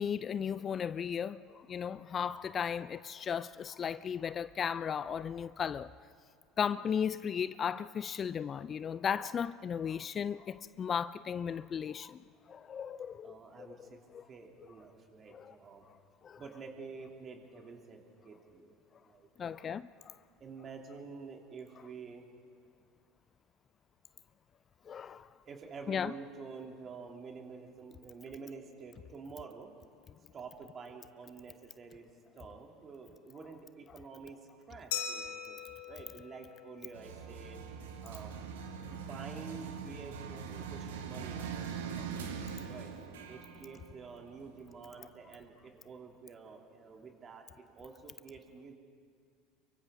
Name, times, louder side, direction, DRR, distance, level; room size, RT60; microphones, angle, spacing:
voice 1, 0.0-5.9 6.6-12.2 12.5-13.8 14.1-14.2 15.3-15.5 16.2-16.4 19.4-20.2 24.9-25.3 25.9-26.1, left 7 dB, 35° left, 0.4 m, -35 dB
voice 2, 13.2-14.0 14.3-15.8 16.4-19.5 20.4-22.2 25.4-29.7 30.3-32.1 32.3-34.4 34.7-35.6 35.9-37.6 38.0-38.3 38.9-42.2 42.7-42.9 43.3-48.8, right 5 dB, 35° right, 2.9 m, -49 dB
Glass, 34.9-37.4, left 8 dB, 70° left, 1.7 m, -41 dB
sound 1, 36.9-44.9, right 6 dB, 75° right, 1.6 m, -42 dB
29.5 x 23.5 x 3.8 m
hypercardioid pair, 70°, 0 cm